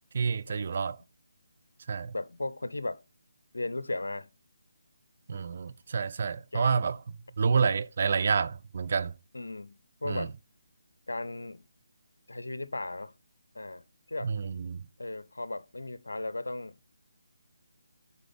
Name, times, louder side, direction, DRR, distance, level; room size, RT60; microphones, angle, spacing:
voice 1, 0.1-1.0 1.9-2.1 5.3-7.0 7.4-9.1 10.1-10.3 14.2-14.8, right 5 dB, 50° right, 0.5 m, -28 dB
voice 2, 2.1-3.0 3.5-4.3 6.5-6.7 9.3-10.3 11.1-11.7 12.3-13.1 13.5-14.3 15.0-16.8, left 2 dB, 80° left, 0.6 m, -36 dB
9.7 x 4.2 x 3.5 m
figure-of-eight pair, 150°, 0 cm